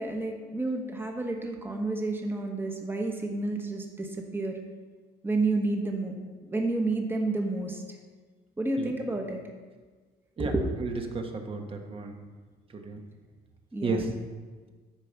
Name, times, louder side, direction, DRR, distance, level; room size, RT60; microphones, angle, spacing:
voice 1, 0.0-4.6 5.2-6.1 6.4-7.8 8.6-9.4 10.4-10.6 13.7-14.0, right 2 dB, 10° right, 2 dB, 1.4 m, -30 dB
voice 2, 8.8-9.2 10.4-12.1 12.7-13.0 13.8-14.1, right 3 dB, 30° right, 3 dB, 1.3 m, -33 dB
12.0 x 5.0 x 5.8 m, 1.4 s
cardioid pair, 130°, 18 cm